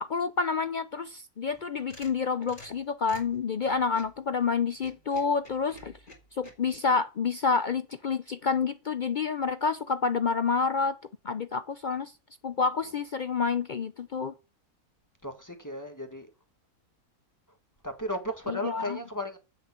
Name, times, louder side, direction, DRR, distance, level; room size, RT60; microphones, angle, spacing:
voice 1, 0.0-5.9 6.4-11.0 11.2-12.1 12.4-14.3 18.5-19.0, left 5 dB, 75° left, 0.4 m, -28 dB
sound 1, 1.5-4.2 4.7-6.5, left 2 dB, 30° left, 3.1 m, -50 dB
voice 2, 15.2-16.3 17.8-19.4, equal, 10° left, 1.5 m, -35 dB
7.8 x 6.7 x 7.1 m
omnidirectional pair, 1.6 m